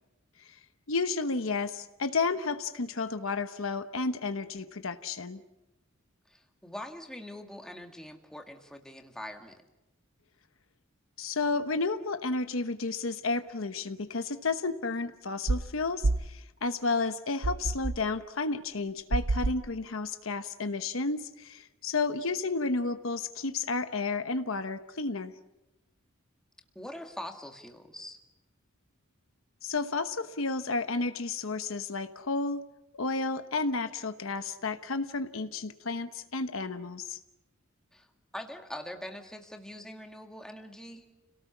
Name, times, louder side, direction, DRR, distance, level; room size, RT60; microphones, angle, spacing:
voice 1, 0.9-5.4 11.2-25.3 29.6-32.6 32.9-37.2, left 3 dB, 70° left, 9 dB, 1.1 m, -32 dB
voice 2, 6.3-9.6 26.8-28.2 37.9-38.1 38.3-41.0, left 1 dB, 5° left, 3 dB, 2.0 m, -43 dB
sound 1, 15.5-15.7 16.0-16.3 17.4-18.0 19.1-19.7, right 2 dB, 70° right, 0.7 m, -28 dB
30.0 x 18.0 x 7.2 m, 0.98 s
head